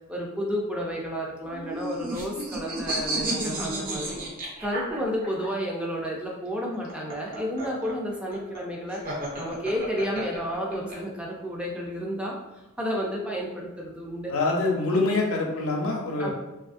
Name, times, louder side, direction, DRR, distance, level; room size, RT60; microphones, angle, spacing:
voice 1, 0.1-4.2 4.6-12.4 12.8-14.3 16.2-16.3, equal, 5° right, -2 dB, 0.4 m, -31 dB
sound 1, 1.5-5.5 6.7-11.0, right 1 dB, 45° right, 0.7 m, -32 dB
voice 2, 14.3-16.3, left 3 dB, 85° left, 0 dB, 0.6 m, -25 dB
3.0 x 2.4 x 2.5 m, 1.0 s
head